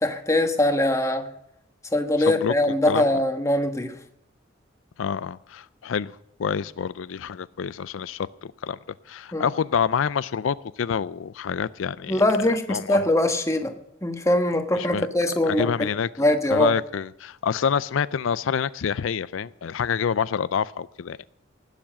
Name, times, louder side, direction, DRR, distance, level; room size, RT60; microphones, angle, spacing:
voice 1, 0.0-1.3 1.9-3.9 9.3-9.5 12.1-13.7 14.0-15.9 16.2-16.7, left 1 dB, 15° left, 1.3 m, -22 dB
voice 2, 2.9-3.2 5.0-8.8 9.1-13.0 14.7-15.1 15.4-16.1 16.5-21.2, left 7 dB, 85° left, 0.4 m, -27 dB
19.0 x 7.3 x 7.5 m
head